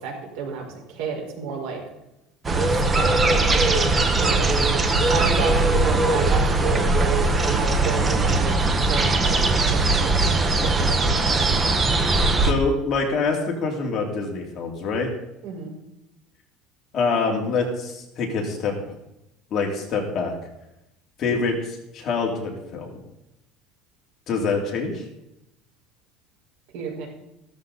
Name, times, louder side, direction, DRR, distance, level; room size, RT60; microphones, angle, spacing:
voice 1, 0.0-1.8 2.5-3.6 4.2-4.5 5.1-11.4 15.4-15.7 26.7-27.1, right 5 dB, 75° right, 1 dB, 4.9 m, -32 dB
sound 1, 2.4-12.5, right 3 dB, 15° right, 1.0 m, -20 dB
voice 2, 12.4-15.1 16.9-18.7 19.5-20.3 21.2-22.9 24.3-25.0, left 4 dB, 30° left, 0 dB, 2.9 m, -25 dB
15.0 x 13.5 x 4.1 m, 0.87 s
cardioid pair, 175°, 0 cm